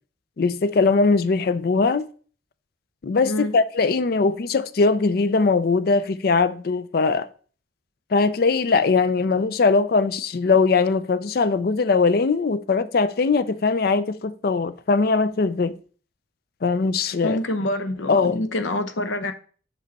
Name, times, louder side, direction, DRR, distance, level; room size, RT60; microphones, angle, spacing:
voice 1, 0.4-2.1 3.0-7.3 8.1-15.7 16.6-17.4 18.1-18.5, left 4 dB, 50° left, 0.4 m, -20 dB
voice 2, 3.2-3.5 17.2-19.3, left 1 dB, 85° left, 0.8 m, -26 dB
5.5 x 5.1 x 4.1 m
head